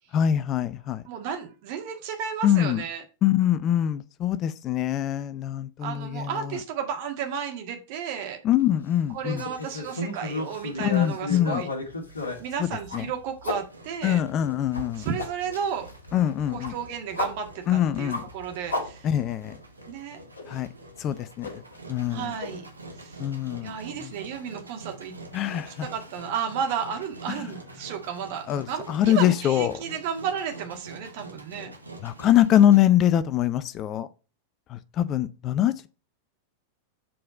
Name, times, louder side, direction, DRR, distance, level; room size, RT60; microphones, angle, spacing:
voice 1, 0.1-1.0 2.4-2.8 3.2-6.6 8.4-9.4 10.8-11.6 12.6-12.7 12.9-13.1 14.0-15.1 16.1-16.7 17.7-18.2 19.0-19.6 20.5-20.7 21.0-21.6 21.9-22.3 23.2-23.7 24.0-24.1 25.3-25.9 27.3-27.5 28.5-29.8 32.0-34.1 34.7-35.9, left 11 dB, 35° left, 0.5 m, -24 dB
voice 2, 1.1-3.0 5.8-8.4 9.1-11.7 12.4-14.2 15.0-15.9 16.5-19.1 19.9-20.2 22.1-22.6 23.0-23.2 23.6-25.1 25.7-31.7, right 7 dB, 50° right, 1.7 m, -33 dB
sound 1, 9.2-13.6 14.1-19.5 19.8-19.9 20.3-20.6 21.4-22.1 22.4-22.5 23.0-23.1 24.4-24.5, left 2 dB, 75° left, 1.9 m, -33 dB
Engine, 13.5-32.8, right 2 dB, 80° right, 1.2 m, -46 dB
7.6 x 4.2 x 5.1 m
figure-of-eight pair, 90°, 0 cm